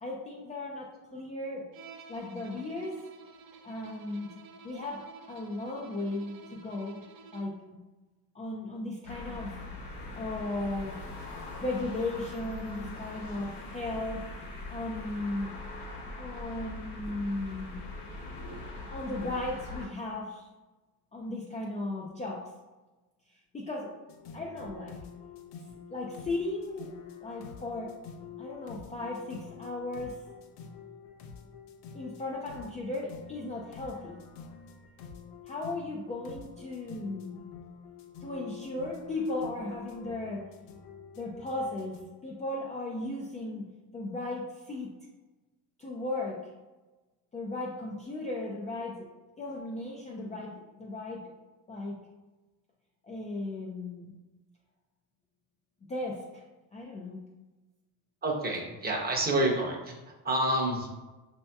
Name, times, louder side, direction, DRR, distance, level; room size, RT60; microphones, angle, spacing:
voice 1, 0.0-1.7 2.1-3.0 3.6-4.3 4.6-7.0 7.3-7.8 8.3-9.5 10.1-11.0 11.6-15.5 16.2-17.8 18.9-20.5 21.1-22.5 23.5-23.9 24.3-25.0 25.9-26.9 27.2-27.9 28.4-30.2 31.9-34.2 35.5-37.4 38.2-40.5 41.2-44.9 45.8-46.4 47.3-49.1 49.4-51.2 51.7-52.0 53.0-54.1 55.9-56.4 56.7-57.2, left 2 dB, 20° left, -3 dB, 0.4 m, -36 dB
Bowed string instrument, 1.7-7.7, right 5 dB, 60° right, 0.6 m, -52 dB
sound 1, 9.0-19.9, left 2 dB, 70° left, 1.2 m, -42 dB
sound 2, 24.1-42.0, left 6 dB, 90° left, 0.6 m, -48 dB
voice 2, 58.2-60.9, right 1 dB, 25° right, 0 dB, 0.8 m, -29 dB
5.4 x 2.8 x 2.2 m, 1.1 s
cardioid pair, 120°, 41 cm